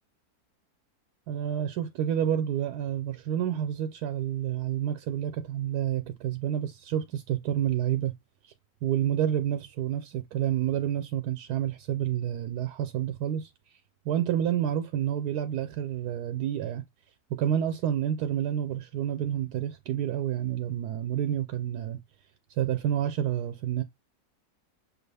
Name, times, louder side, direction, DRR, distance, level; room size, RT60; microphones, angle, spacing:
voice 1, 1.3-8.1 8.8-13.7 14.1-16.8 17.3-22.0 22.6-23.8, right 10 dB, 85° right, 1.1 m, -29 dB
6.5 x 2.4 x 3.3 m
omnidirectional pair, 1.7 m